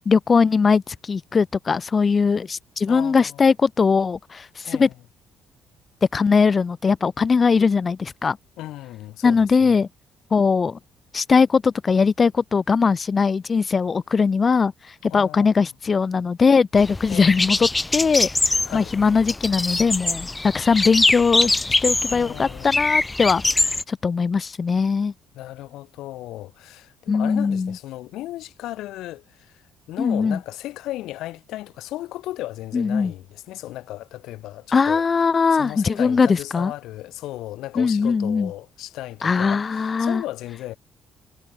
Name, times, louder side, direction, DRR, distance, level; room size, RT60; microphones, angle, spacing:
voice 1, 0.1-4.9 6.1-8.4 9.2-9.9 10.3-10.8 11.1-23.4 23.9-25.1 27.1-27.7 30.0-30.4 32.7-33.1 34.7-36.7 37.8-38.5 39.2-40.2, left 5 dB, 35° left, 2.1 m, -20 dB
voice 2, 2.9-3.4 4.6-4.9 8.6-9.8 15.1-15.7 17.1-17.5 18.6-19.0 22.1-22.8 25.4-35.0 35.5-40.8, left 15 dB, 60° left, 7.0 m, -35 dB
sound 1, 16.8-23.8, left 2 dB, 20° left, 4.9 m, -23 dB
figure-of-eight pair, 45°, 0 cm